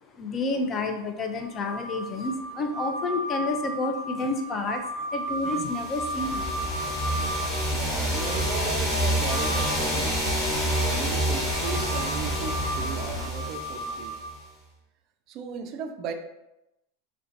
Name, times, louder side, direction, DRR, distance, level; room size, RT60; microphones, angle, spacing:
voice 1, 0.1-6.5, left 2 dB, 35° left, 5 dB, 0.4 m, -30 dB
sound 1, 1.4-9.9 10.7-14.2, right 1 dB, 15° right, 0.7 m, -35 dB
sound 2, 5.6-14.3, equal, 15° left, 1.0 m, -28 dB
sound 3, 6.2-13.3, left 2 dB, 90° left, 0.7 m, -38 dB
voice 2, 7.7-10.3 10.6-14.2 15.3-16.1, right 6 dB, 45° right, 6 dB, 0.3 m, -37 dB
2.4 x 2.2 x 2.7 m, 0.92 s
hypercardioid pair, 95°, 0 cm